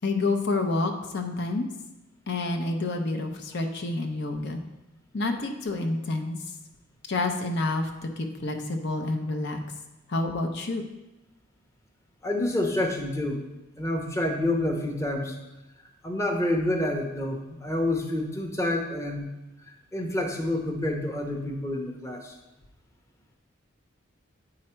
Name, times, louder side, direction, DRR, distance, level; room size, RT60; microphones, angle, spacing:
voice 1, 0.0-1.7 2.3-4.6 5.1-6.4 7.1-9.6 10.1-10.8, left 2 dB, 60° left, 4 dB, 0.7 m, -28 dB
voice 2, 12.2-13.4 13.8-15.3 16.0-19.3 19.9-22.3, left 1 dB, 15° left, 2 dB, 0.8 m, -28 dB
8.7 x 4.8 x 4.4 m, 0.98 s
head